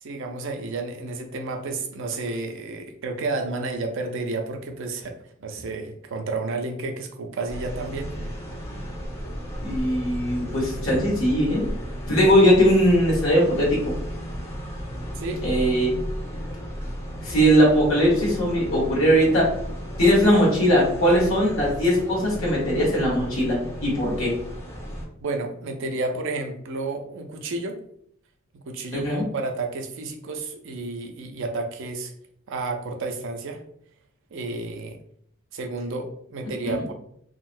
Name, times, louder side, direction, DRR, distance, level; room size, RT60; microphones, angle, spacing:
voice 1, 0.0-5.1 5.4-8.3 15.2-15.5 25.2-27.8 28.7-32.1 32.5-33.6 34.3-35.0 35.5-36.9, right 3 dB, 65° right, 5 dB, 0.5 m, -31 dB
sound 1, 7.5-25.0, equal, 15° left, 1.0 m, -34 dB
voice 2, 9.6-11.7 12.1-13.9 15.4-15.9 17.2-19.5 20.0-24.3 28.9-29.2 36.6-36.7, equal, 85° left, -5 dB, 1.2 m, -20 dB
3.8 x 2.1 x 2.5 m, 0.67 s
head